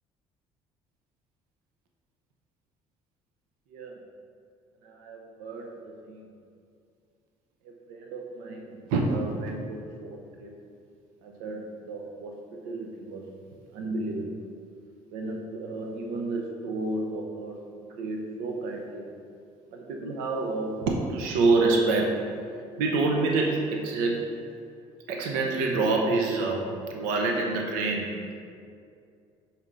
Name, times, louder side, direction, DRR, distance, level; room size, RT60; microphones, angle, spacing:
voice 1, 4.8-5.7 6.0-6.2 7.6-10.5 11.2-13.4 13.7-14.4 15.1-17.6 18.0-19.1 19.7-22.5 22.8-24.4 25.1-28.4, right 3 dB, 85° right, 1 dB, 0.7 m, -29 dB
5.1 x 4.3 x 4.6 m, 2.3 s
supercardioid pair, 75°, 14 cm